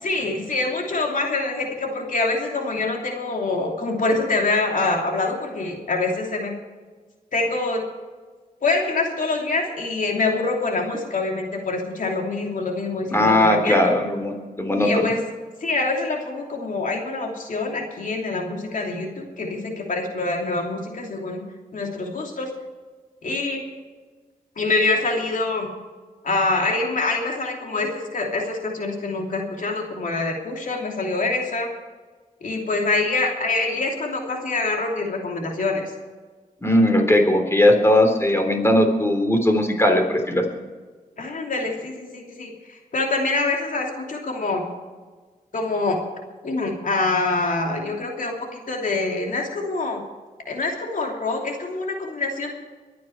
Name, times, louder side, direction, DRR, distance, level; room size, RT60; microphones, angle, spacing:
voice 1, 0.0-6.5 7.3-7.8 8.6-14.0 14.8-15.2 15.6-21.4 21.7-22.5 23.2-23.6 24.6-25.7 26.2-31.7 32.4-35.8 41.2-44.6 45.5-46.0 46.4-50.0 50.5-52.5, left 3 dB, 60° left, 1 dB, 3.0 m, -25 dB
voice 2, 13.1-15.1 36.6-40.4, left 1 dB, 15° left, 4 dB, 3.6 m, -18 dB
23.5 x 9.4 x 4.6 m, 1.4 s
cardioid pair, 75°, 15 cm